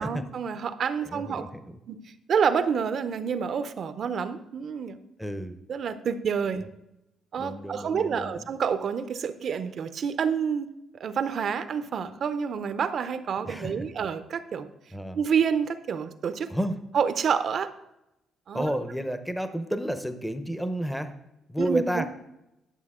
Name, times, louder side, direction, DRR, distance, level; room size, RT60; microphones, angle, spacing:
voice 1, 0.0-1.5 1.9-2.0 2.3-5.0 5.7-6.6 7.3-14.7 15.1-16.5 16.9-17.7 18.5-18.6 21.6-22.1, right 7 dB, 60° right, 12 dB, 0.6 m, -28 dB
voice 2, 1.0-1.8 5.2-5.6 6.6-6.7 7.4-8.5 13.4-13.9 14.9-15.2 16.5-16.8 18.5-21.1 21.5-22.1, equal, ahead, 9 dB, 0.7 m, -31 dB
11.0 x 7.0 x 3.7 m, 0.89 s
cardioid pair, 90°, 0 cm